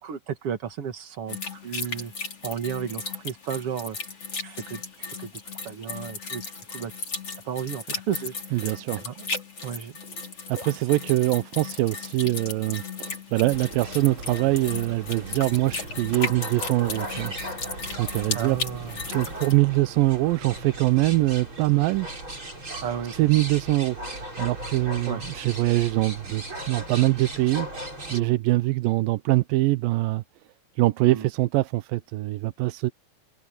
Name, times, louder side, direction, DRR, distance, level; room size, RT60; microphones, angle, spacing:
voice 1, 0.0-2.1 2.4-4.0 4.4-5.3 5.6-6.4 6.7-6.9 7.5-9.3 9.6-10.0 18.3-19.0 22.8-23.1 25.1-25.2 28.1-28.4 31.0-31.3, right 8 dB, 50° right, 2.1 m, -33 dB
sound 1, 1.3-19.6, left 4 dB, 40° left, 5.6 m, -36 dB
voice 2, 8.5-9.0 10.5-17.3 18.0-18.6 19.1-22.1 23.2-27.7 28.1-30.2 30.8-32.9, right 19 dB, 85° right, 2.5 m, -23 dB
sound 2, 13.5-28.2, right 1 dB, 35° right, 7.6 m, -37 dB
omnidirectional pair, 4.0 m